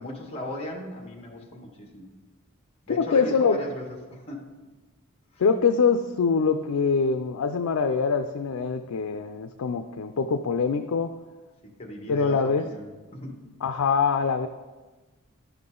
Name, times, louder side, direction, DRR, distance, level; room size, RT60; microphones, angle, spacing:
voice 1, 0.0-2.1 2.9-4.5 5.3-5.4 11.8-13.4, left 1 dB, 30° left, 1 dB, 1.6 m, -36 dB
voice 2, 3.0-3.6 5.4-11.1 12.1-12.6 13.6-14.5, left 5 dB, 90° left, 7 dB, 0.4 m, -24 dB
11.5 x 5.9 x 3.8 m, 1.2 s
head